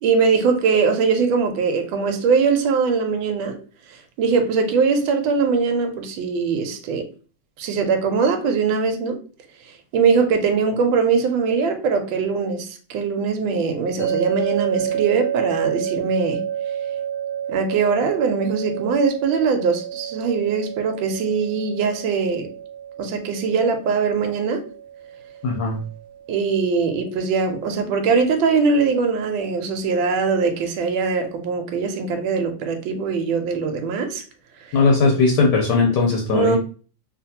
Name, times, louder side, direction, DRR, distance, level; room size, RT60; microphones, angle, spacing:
voice 1, 0.0-3.6 4.2-7.0 7.6-9.2 9.9-16.4 17.5-22.5 23.0-24.7 26.3-34.2 34.7-34.8 36.3-36.6, right 5 dB, 80° right, 1.3 m, -21 dB
sound 1, 14.0-27.1, right 9 dB, 35° right, 0.6 m, -30 dB
voice 2, 25.4-25.8 34.7-36.6, left 4 dB, 70° left, 1.1 m, -18 dB
3.3 x 2.5 x 2.7 m
omnidirectional pair, 2.2 m